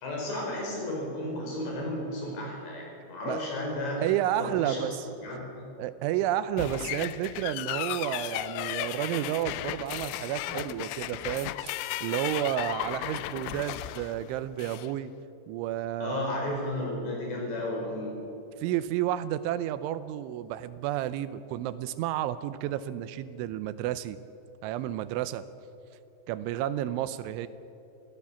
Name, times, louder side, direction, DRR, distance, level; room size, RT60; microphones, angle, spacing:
voice 1, 0.0-4.0 4.4-4.8 5.2-5.4 16.0-18.2, left 1 dB, 65° left, -1 dB, 7.2 m, -33 dB
voice 2, 4.0-5.0 5.8-11.7 12.0-15.1 15.5-16.3 18.6-24.2 24.6-25.5 26.3-27.5, right 12 dB, 85° right, 14 dB, 3.1 m, -31 dB
sound 1, 6.6-14.9, left 15 dB, 80° left, 2.8 m, -35 dB
24.0 x 15.5 x 7.2 m, 2.7 s
omnidirectional pair, 5.5 m